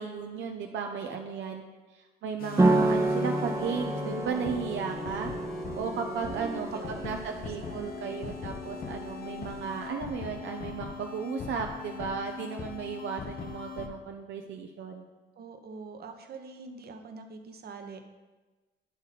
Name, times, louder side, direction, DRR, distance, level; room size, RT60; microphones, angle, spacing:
voice 1, 0.0-1.6 2.2-5.3 5.7-6.7 7.0-7.2 7.4-15.0, right 6 dB, 75° right, 3 dB, 0.6 m, -35 dB
sound 1, 2.4-13.9, left 6 dB, 50° left, 0.7 m, -41 dB
sound 2, 2.6-9.9, right 2 dB, 15° right, 0.6 m, -30 dB
voice 2, 6.2-7.9 15.4-18.0, right 4 dB, 50° right, 6 dB, 0.9 m, -44 dB
11.0 x 3.9 x 4.1 m, 1.2 s
cardioid pair, 90°, 20 cm